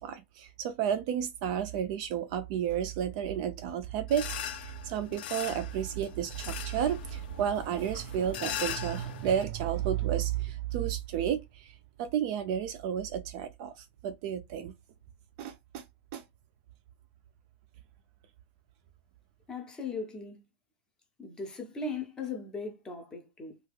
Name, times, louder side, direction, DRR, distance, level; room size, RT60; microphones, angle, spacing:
voice 1, 0.0-14.7 15.4-15.8 16.1-16.2, right 9 dB, 35° right, 0.3 m, -32 dB
sound 1, 4.1-9.4, left 10 dB, 55° left, 0.5 m, -40 dB
voice 2, 19.5-20.5 21.2-23.6, left 3 dB, 10° left, 0.6 m, -38 dB
2.8 x 2.3 x 3.3 m
supercardioid pair, 170°, 6 cm